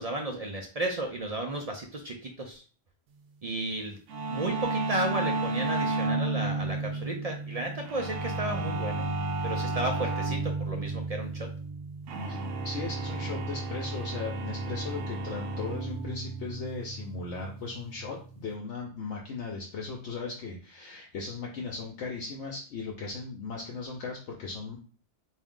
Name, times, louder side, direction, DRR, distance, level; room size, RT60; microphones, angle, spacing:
voice 1, 0.0-2.6 3.4-4.0 4.3-9.1 9.4-11.5, right 2 dB, 50° right, 2 dB, 0.4 m, -33 dB
sound 1, 4.1-18.6, right 2 dB, 90° right, 0.9 m, -33 dB
voice 2, 12.6-24.8, left 4 dB, 70° left, -1 dB, 1.0 m, -37 dB
3.5 x 2.6 x 3.6 m, 0.39 s
omnidirectional pair, 1.2 m